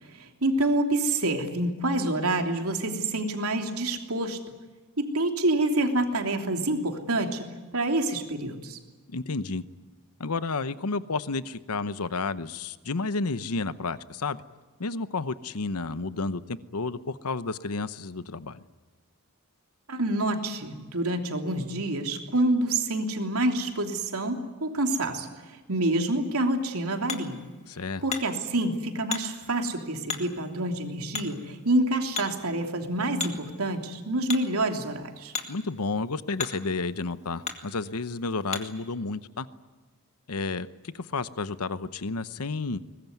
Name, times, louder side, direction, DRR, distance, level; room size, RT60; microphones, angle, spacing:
voice 1, 0.0-4.4 5.0-8.8 19.9-25.3 25.7-27.4 28.0-35.3, right 2 dB, 75° right, 4 dB, 3.1 m, -27 dB
voice 2, 9.1-9.6 10.2-14.4 14.8-18.6 27.7-28.0 35.5-39.5 40.3-42.8, left 3 dB, 90° left, 14 dB, 0.9 m, -31 dB
Hammer, 26.2-38.9, left 5 dB, 30° left, 2.2 m, -40 dB
23.0 x 20.5 x 9.5 m, 1.3 s
head